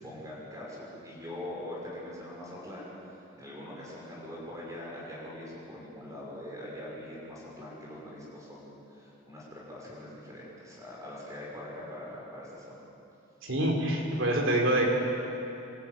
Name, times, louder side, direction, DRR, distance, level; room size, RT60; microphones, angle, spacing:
voice 1, 0.0-12.8, left 1 dB, 15° right, -5 dB, 6.1 m, -43 dB
voice 2, 13.4-14.9, right 1 dB, 60° right, 0 dB, 3.9 m, -26 dB
27.0 x 13.0 x 9.2 m, 2.9 s
head